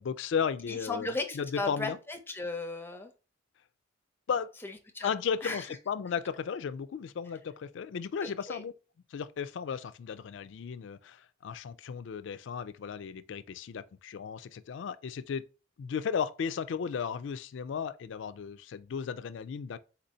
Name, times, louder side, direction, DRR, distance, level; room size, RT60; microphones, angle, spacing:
voice 1, 0.0-2.0 4.3-4.5 5.0-8.7 9.1-15.5 15.8-19.8, left 6 dB, 60° left, 0.3 m, -35 dB
voice 2, 0.7-3.1 4.6-5.1 5.4-5.8 8.2-8.6, left 2 dB, 10° left, 0.6 m, -36 dB
4.3 x 2.6 x 4.2 m
head